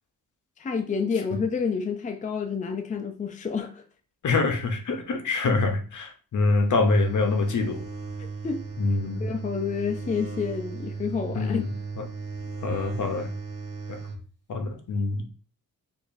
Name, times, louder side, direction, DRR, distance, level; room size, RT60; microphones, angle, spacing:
voice 1, 0.6-3.8 8.4-8.6 9.2-11.6, left 5 dB, 20° left, 0.4 m, -29 dB
voice 2, 4.2-7.8 8.8-9.3 11.3-11.7 12.0-12.1 12.6-13.3 13.9-14.0 14.5-15.2, left 3 dB, 55° left, 0.8 m, -25 dB
sound 1, 6.6-14.2, right 4 dB, 45° right, 1.0 m, -36 dB
4.7 x 2.5 x 2.6 m
wide cardioid pair, 105°, 35 cm